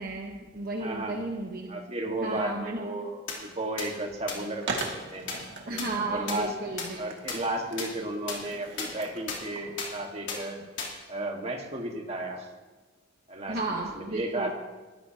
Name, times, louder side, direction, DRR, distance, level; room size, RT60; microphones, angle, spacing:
voice 1, 0.0-1.7 2.2-2.8 5.7-7.0 13.5-14.5, right 2 dB, 50° right, 0 dB, 1.2 m, -33 dB
voice 2, 0.8-1.2 1.7-6.5 7.0-10.7 11.1-12.5 13.3-14.5, right 1 dB, 35° right, 2 dB, 1.7 m, -34 dB
sound 1, 3.3-3.4 3.8-3.9 4.3-4.4 4.8-4.9 5.3-5.4 5.8-5.9 6.3-6.4 6.8-6.9 7.3-7.4 7.8-7.9 8.3-8.4 8.8-8.9 9.3-9.4 9.8-9.9 10.3-10.4 10.8-10.9, left 6 dB, 70° left, 3.2 m, -32 dB
Skateboard, 4.6-10.1, right 3 dB, 65° right, 2.0 m, -41 dB
20.5 x 14.0 x 2.9 m, 1.2 s
head